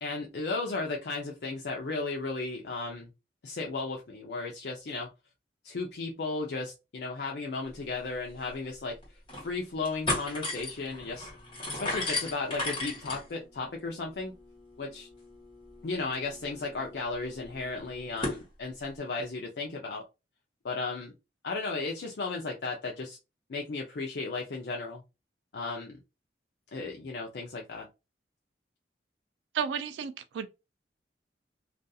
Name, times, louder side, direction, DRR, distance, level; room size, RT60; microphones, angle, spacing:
voice 1, 0.0-3.1 3.4-5.1 5.6-9.0 9.4-11.3 11.7-14.3 14.8-15.1 15.8-20.0 20.6-21.1 21.4-23.2 23.5-25.0 25.5-26.0 26.7-27.9, left 3 dB, 65° left, 0.5 m, -35 dB
sound 1, 8.0-8.1 8.4-8.5 9.0-9.5 9.8-18.4, left 2 dB, 30° left, 1.2 m, -37 dB
voice 2, 29.5-30.5, right 7 dB, 85° right, 0.3 m, -32 dB
2.5 x 2.3 x 2.6 m
head